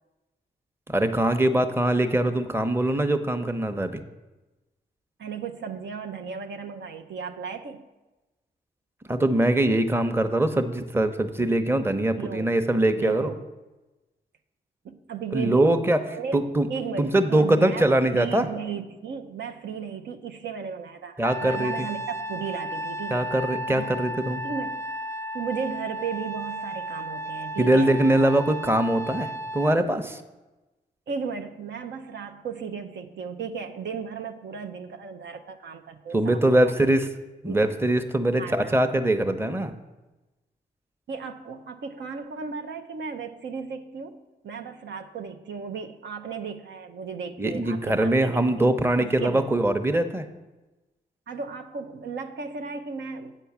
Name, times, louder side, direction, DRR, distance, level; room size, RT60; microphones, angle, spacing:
voice 1, 0.9-4.0 9.1-13.3 15.3-16.0 16.3-16.7 17.0-18.5 21.2-21.9 23.1-24.4 27.6-30.2 36.1-37.1 37.4-39.7 47.4-50.3, right 1 dB, 10° right, 8 dB, 0.8 m, -22 dB
voice 2, 5.2-7.8 12.1-12.5 13.0-13.4 14.8-15.7 16.1-16.4 16.7-23.3 23.7-23.9 24.4-24.8 25.3-27.9 31.1-36.8 37.5-37.7 38.4-38.8 41.1-48.7 49.0-49.5 51.3-53.4, right 6 dB, 70° right, 6 dB, 0.6 m, -35 dB
Trumpet, 21.2-29.8, right 1 dB, 15° left, 0.4 m, -34 dB
8.1 x 4.6 x 7.2 m, 1.1 s
cardioid pair, 50°, 19 cm